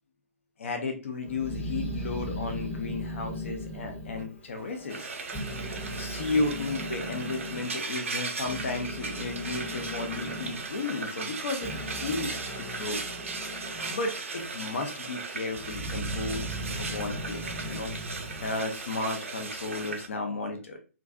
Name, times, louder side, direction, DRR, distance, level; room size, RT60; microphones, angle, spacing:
voice 1, 0.6-5.1 6.0-13.0 13.9-17.9 18.4-20.8, left 3 dB, 60° left, 5 dB, 0.5 m, -33 dB
Growling, 1.2-5.0 5.3-7.6 8.2-14.0 14.4-15.1 15.5-19.3, equal, 10° left, 0.6 m, -38 dB
Frying (food), 4.9-20.1, right 4 dB, 60° right, 0.5 m, -37 dB
2.5 x 2.3 x 2.2 m, 0.34 s
figure-of-eight pair, 125°, 8 cm